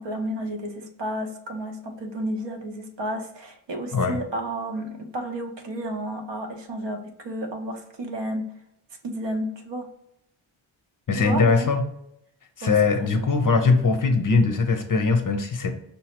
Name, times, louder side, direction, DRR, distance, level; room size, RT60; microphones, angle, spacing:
voice 1, 0.0-8.5 9.0-9.9 11.1-11.7 12.6-12.8 13.0-13.2, right 1 dB, 55° right, 4 dB, 0.8 m, -32 dB
voice 2, 11.1-11.8 12.6-15.7, left 4 dB, 40° left, 6 dB, 0.6 m, -21 dB
5.2 x 2.0 x 2.9 m, 0.77 s
cardioid pair, 45°, 50 cm